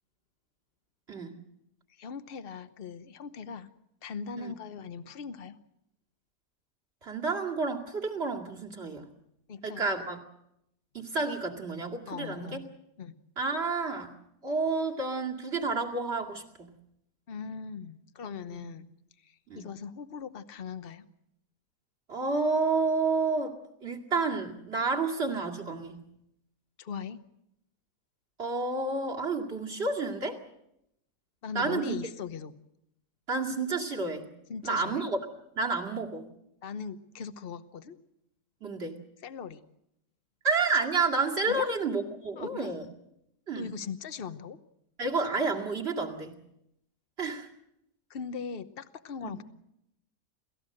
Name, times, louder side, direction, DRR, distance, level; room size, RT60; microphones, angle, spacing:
voice 1, 1.1-1.4 4.4-4.5 7.0-9.1 9.6-10.2 10.9-12.6 13.4-14.1 14.4-16.7 18.5-18.7 19.5-19.7 22.1-26.0 28.4-30.4 31.5-32.0 33.3-34.3 34.6-35.2 35.5-36.3 38.6-39.0 40.4-42.9 43.5-43.7 45.0-46.4 47.2-47.5 49.2-49.3, right 4 dB, 40° right, 1 dB, 2.6 m, -30 dB
voice 2, 1.9-3.7 4.0-5.6 9.5-9.9 12.1-12.6 13.0-13.1 17.3-18.9 19.2-21.1 26.8-27.2 31.4-32.5 34.5-35.1 36.6-38.0 39.2-39.6 41.5-41.7 42.4-42.7 43.5-44.6 48.1-49.4, left 6 dB, 40° left, 11 dB, 1.1 m, -39 dB
28.5 x 14.5 x 7.8 m, 0.83 s
omnidirectional pair, 1.7 m